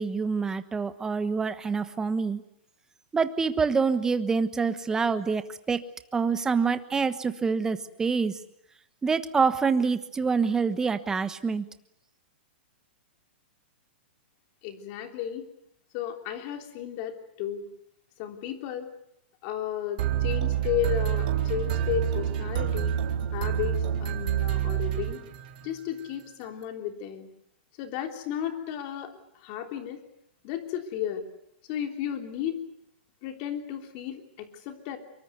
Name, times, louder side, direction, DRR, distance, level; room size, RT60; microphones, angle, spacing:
voice 1, 0.0-2.4 3.1-5.8 6.1-8.4 9.0-11.6, right 5 dB, 10° right, 11 dB, 1.2 m, -26 dB
voice 2, 14.6-15.5 15.9-17.7 18.2-18.9 19.4-23.0 23.3-25.2 25.6-27.3 27.8-30.0 30.4-31.3 31.7-32.6 33.2-35.0, left 10 dB, 40° left, 5 dB, 3.5 m, -33 dB
sound 1, 20.0-25.7, right 10 dB, 50° right, 3.6 m, -27 dB
25.0 x 23.5 x 8.2 m, 0.77 s
hypercardioid pair, 155°, 6 cm